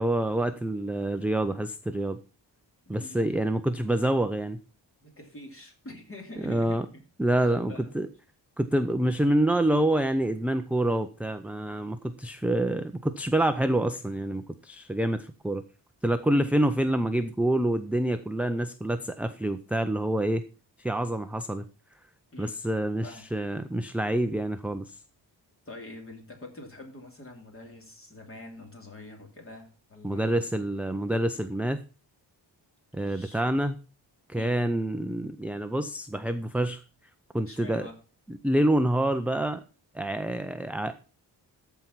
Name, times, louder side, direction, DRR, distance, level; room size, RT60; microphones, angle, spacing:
voice 1, 0.0-2.2 2.9-4.6 6.4-6.9 7.2-8.1 8.6-15.6 16.0-20.4 20.8-21.6 22.4-25.0 30.0-31.8 32.9-33.8 34.3-36.8 37.3-37.9 38.3-39.6 39.9-41.0, right 1 dB, 5° right, 8 dB, 0.4 m, -27 dB
voice 2, 2.8-3.5 5.0-7.0 7.4-7.9 16.3-16.5 22.3-22.6 23.0-23.3 25.7-30.5 33.0-33.4 34.4-34.6 37.5-38.0, left 2 dB, 30° left, 2 dB, 2.7 m, -45 dB
13.5 x 4.6 x 5.6 m, 0.34 s
wide cardioid pair, 135°, 42 cm